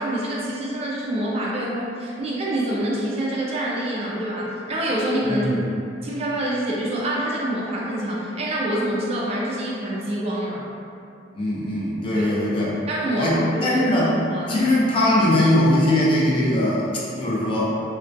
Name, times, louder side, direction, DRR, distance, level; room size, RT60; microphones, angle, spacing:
voice 1, 0.0-5.5 6.0-10.6 12.1-12.3 12.9-14.7, right 1 dB, 35° right, -5 dB, 0.3 m, -26 dB
voice 2, 5.3-5.6 11.3-12.7 13.2-14.2 14.5-16.8 17.2-17.7, left 1 dB, 30° left, -7 dB, 0.4 m, -20 dB
2.3 x 2.2 x 2.5 m, 2.6 s
head